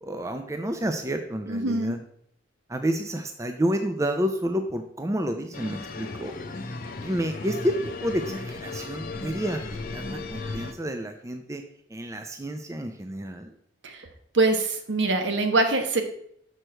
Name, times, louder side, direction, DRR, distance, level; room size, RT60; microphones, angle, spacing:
voice 1, 0.0-2.0 2.7-6.3 7.0-9.6 9.9-11.6 11.9-13.5, equal, 15° right, 7 dB, 0.4 m, -29 dB
voice 2, 1.5-1.9 13.8-14.1 14.3-16.0, right 2 dB, 70° right, 6 dB, 1.1 m, -24 dB
sound 1, 5.5-10.7, left 3 dB, 45° left, 0.7 m, -35 dB
6.5 x 6.4 x 4.4 m, 0.68 s
head